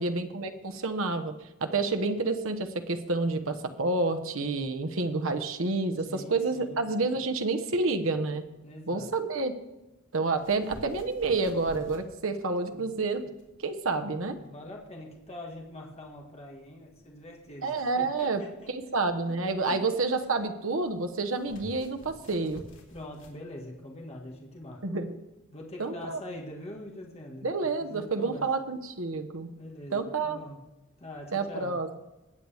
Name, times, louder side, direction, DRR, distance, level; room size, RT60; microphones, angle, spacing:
voice 1, 0.0-1.3 1.6-8.4 8.9-9.5 10.1-13.2 13.6-14.4 17.6-18.4 18.7-22.6 24.8-25.2 25.8-26.2 27.4-29.5 29.9-30.4 31.3-31.9, right 3 dB, 65° right, 7 dB, 1.2 m, -29 dB
voice 2, 6.1-6.8 8.6-9.1 12.7-12.9 14.4-18.7 22.9-24.8 25.5-28.5 29.6-30.6 31.0-31.8, left 1 dB, 30° left, -1 dB, 1.7 m, -44 dB
sound 1, 10.4-23.4, equal, 65° left, 2.8 m, -52 dB
20.0 x 8.1 x 3.5 m, 1.0 s
head